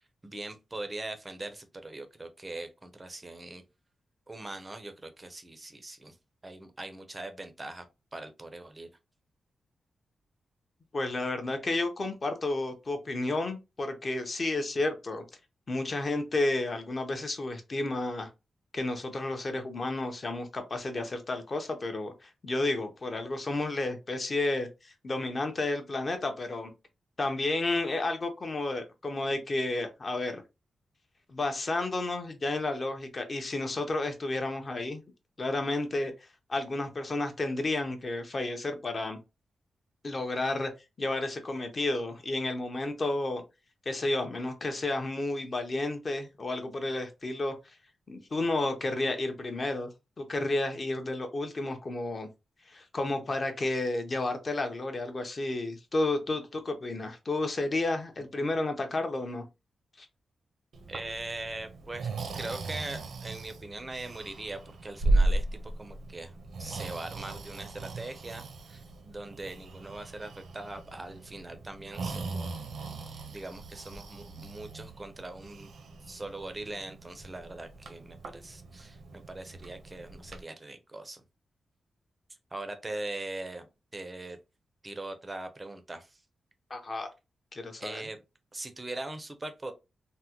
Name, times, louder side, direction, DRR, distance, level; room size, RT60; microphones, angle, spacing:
voice 1, 0.2-3.6 4.3-6.2 6.4-7.9 8.1-8.9 60.9-72.5 73.3-75.7 76.0-81.2 82.5-84.4 84.8-86.2 87.8-88.2 88.5-89.7, right 2 dB, 20° right, 0.5 m, -41 dB
voice 2, 10.9-15.2 15.7-18.3 18.7-26.7 27.2-30.4 31.3-35.0 35.4-36.1 36.5-39.2 40.0-40.7 41.0-43.4 43.9-47.8 48.1-49.9 50.2-52.3 52.7-59.5 60.0-60.1 86.7-87.1 87.5-88.0, left 2 dB, 30° left, 0.6 m, -31 dB
Breathing, 60.7-80.4, right 2 dB, 70° right, 0.6 m, -36 dB
3.5 x 2.1 x 2.8 m
wide cardioid pair, 175°, 0 cm